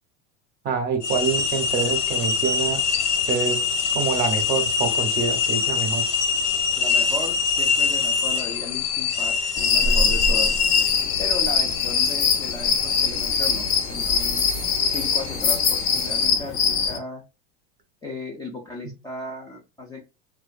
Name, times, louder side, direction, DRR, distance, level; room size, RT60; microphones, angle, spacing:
voice 1, 0.6-2.8 3.3-6.0, right 5 dB, 30° right, 6 dB, 0.6 m, -26 dB
sound 1, 1.0-16.3, left 5 dB, 80° left, 1.2 m, -25 dB
voice 2, 6.8-10.5 11.2-14.4 14.9-17.2 18.0-20.0, left 2 dB, 10° left, -2 dB, 0.3 m, -36 dB
sound 2, 9.6-17.0, left 6 dB, 60° left, 0.8 m, -23 dB
2.4 x 2.2 x 2.3 m, 0.28 s
supercardioid pair, 120°, 33 cm